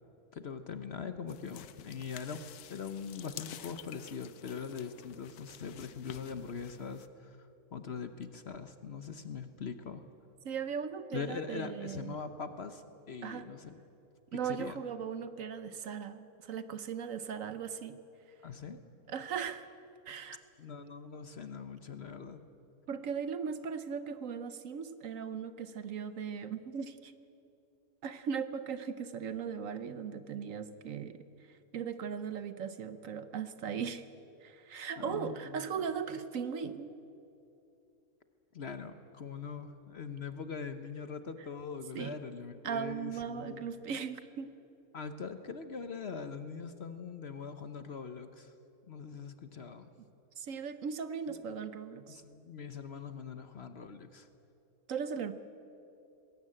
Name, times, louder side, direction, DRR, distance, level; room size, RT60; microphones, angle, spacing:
voice 1, 0.3-10.0 11.1-13.8 14.4-14.8 18.4-18.8 20.6-22.4 35.0-35.7 38.5-43.6 44.9-48.5 48.9-49.9 52.1-54.3, left 5 dB, 50° left, 9 dB, 0.9 m, -42 dB
sound 1, 1.3-7.1, left 10 dB, 80° left, 1.2 m, -50 dB
voice 2, 10.4-12.2 13.2-13.5 14.3-18.0 19.1-19.7 20.1-20.4 22.9-27.1 28.0-31.2 31.7-34.1 34.4-36.9 41.9-42.2 42.6-44.5 50.4-52.2 54.9-55.3, right 7 dB, 60° right, 11 dB, 1.1 m, -38 dB
20.5 x 16.0 x 8.8 m, 2.8 s
omnidirectional pair, 1.7 m